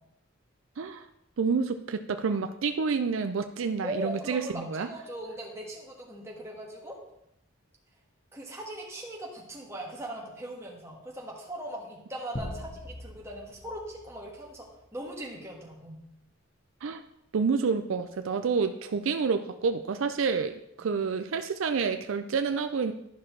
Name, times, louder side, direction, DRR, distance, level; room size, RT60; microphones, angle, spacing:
voice 1, 1.4-4.9 16.8-17.0 17.3-22.9, right 5 dB, 70° right, 8 dB, 0.4 m, -28 dB
voice 2, 3.8-6.9 8.3-14.6 14.9-16.0 20.8-20.9, right 1 dB, 15° right, -3 dB, 1.6 m, -39 dB
sound 1, 12.3-15.2, left 1 dB, 30° left, 1.0 m, -42 dB
12.0 x 5.9 x 3.2 m, 0.81 s
head